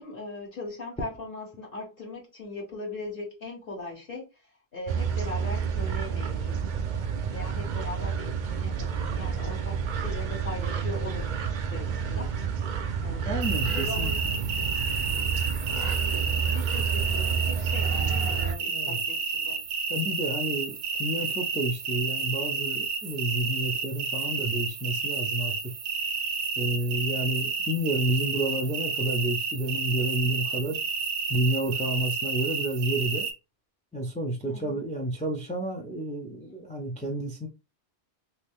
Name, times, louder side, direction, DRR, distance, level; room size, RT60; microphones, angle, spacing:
voice 1, 0.0-4.3 4.7-6.7 7.3-12.3 13.0-13.3 13.6-14.2 15.2-19.6 21.2-21.3 34.5-34.8 36.5-36.6, left 2 dB, 55° left, 1.3 m, -40 dB
sound 1, 4.9-18.5, right 6 dB, 60° right, 0.5 m, -29 dB
voice 2, 13.3-14.5 18.7-19.0 19.9-25.6 26.6-30.8 31.3-33.3 33.9-37.5, right 1 dB, 10° left, 0.3 m, -30 dB
sound 2, 13.4-33.3, right 5 dB, 85° right, 1.0 m, -31 dB
2.7 x 2.6 x 3.5 m
omnidirectional pair, 1.2 m